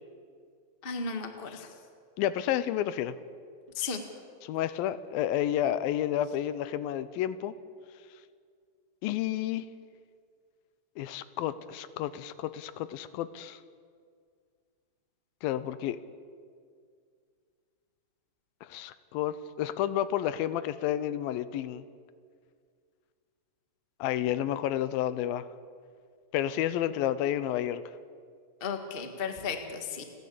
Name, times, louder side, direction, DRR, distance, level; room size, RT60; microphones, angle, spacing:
voice 1, 0.8-1.7 3.7-4.0 28.6-30.0, left 5 dB, 55° left, 5 dB, 0.6 m, -34 dB
voice 2, 2.2-3.2 4.4-7.5 9.0-9.7 11.0-13.6 15.4-16.0 18.6-21.9 24.0-25.5 26.3-27.8, left 11 dB, 85° left, 14 dB, 2.5 m, -30 dB
29.5 x 11.0 x 8.6 m, 2.1 s
omnidirectional pair, 4.2 m